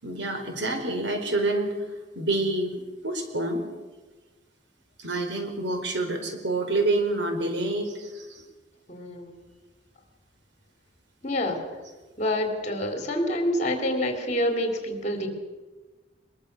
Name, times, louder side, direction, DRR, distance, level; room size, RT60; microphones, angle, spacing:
voice 1, 0.0-1.8 2.1-2.8 3.0-3.7 5.0-8.4, right 2 dB, 70° right, 5 dB, 4.8 m, -27 dB
voice 2, 8.9-9.4 11.2-11.7 12.2-15.3, left 1 dB, 40° left, 5 dB, 3.8 m, -27 dB
22.5 x 22.5 x 6.9 m, 1.2 s
head